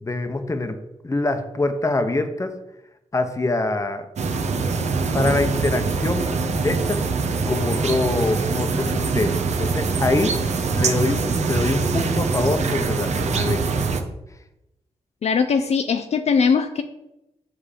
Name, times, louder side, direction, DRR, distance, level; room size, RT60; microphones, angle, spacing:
voice 1, 0.0-0.8 1.0-2.5 3.1-4.1 5.1-6.3 6.6-7.0 7.5-10.4 10.7-13.6, left 2 dB, 25° left, 8 dB, 0.9 m, -24 dB
sound 1, 4.2-14.0, right 4 dB, 65° right, 0.9 m, -23 dB
voice 2, 15.2-16.8, left 5 dB, 60° left, 7 dB, 0.5 m, -20 dB
7.6 x 5.8 x 5.0 m, 0.91 s
wide cardioid pair, 100°, 12 cm